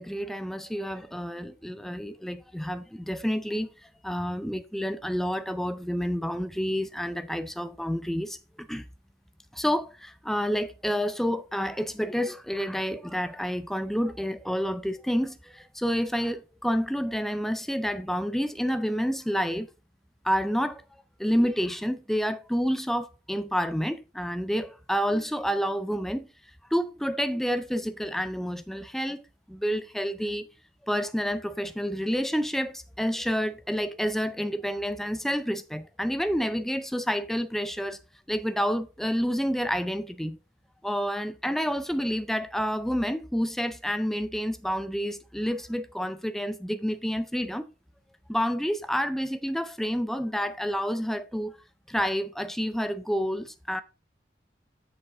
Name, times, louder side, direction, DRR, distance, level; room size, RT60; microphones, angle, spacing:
voice 1, 0.0-8.8 9.5-19.7 20.2-20.8 21.2-26.3 26.7-29.2 29.5-30.5 30.8-38.0 38.3-40.4 40.8-47.7 48.3-51.6 51.9-53.8, equal, ahead, 0.4 m, -29 dB
7.8 x 6.7 x 3.5 m
head